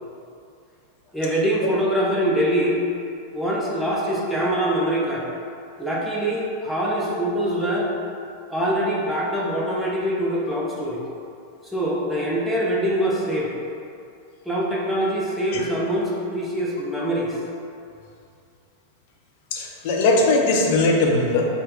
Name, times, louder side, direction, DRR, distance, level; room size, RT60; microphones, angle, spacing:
voice 1, 1.1-2.9 3.3-5.2 5.8-7.9 8.5-11.0 11.6-13.5 14.5-17.4, equal, ahead, -6 dB, 0.7 m, -24 dB
voice 2, 19.5-21.5, left 2 dB, 50° left, 0 dB, 0.6 m, -19 dB
5.4 x 2.0 x 3.5 m, 2.5 s
figure-of-eight pair, 90°, 0 cm